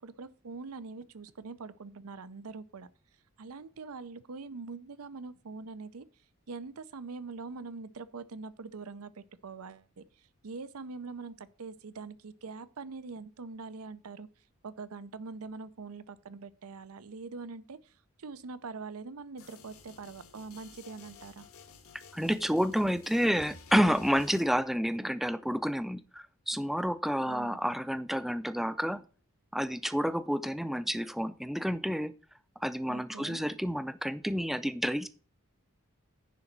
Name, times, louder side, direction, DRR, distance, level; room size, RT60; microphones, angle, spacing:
voice 1, 0.0-2.9 3.4-6.1 6.5-14.3 14.6-21.4 27.3-27.6 32.9-33.4, right 4 dB, 85° right, 0.6 m, -43 dB
sound 1, 19.4-24.4, left 4 dB, 80° left, 1.6 m, -53 dB
voice 2, 22.1-29.0 29.5-32.1 32.6-35.1, equal, ahead, 0.5 m, -29 dB
10.5 x 3.9 x 7.3 m
head